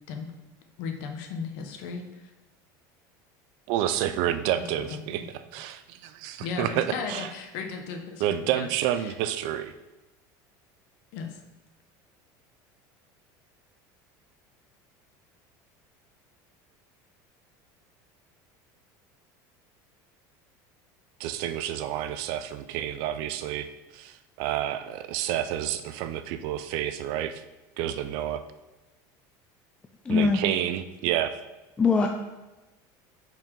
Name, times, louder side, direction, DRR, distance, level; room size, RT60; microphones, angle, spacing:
voice 1, 0.8-2.3 4.5-5.2 6.4-8.7 9.0-9.1 11.1-11.4, left 5 dB, 60° left, 4 dB, 1.1 m, -36 dB
voice 2, 3.7-5.2 5.5-7.3 8.2-9.7 21.2-23.7 23.9-27.4 27.8-28.4 30.1-31.4, right 11 dB, 60° right, 11 dB, 0.5 m, -29 dB
voice 3, 30.0-30.4 31.8-32.1, left 4 dB, 10° left, 3 dB, 0.3 m, -21 dB
5.7 x 4.5 x 5.3 m, 1.1 s
cardioid pair, 165°, 9 cm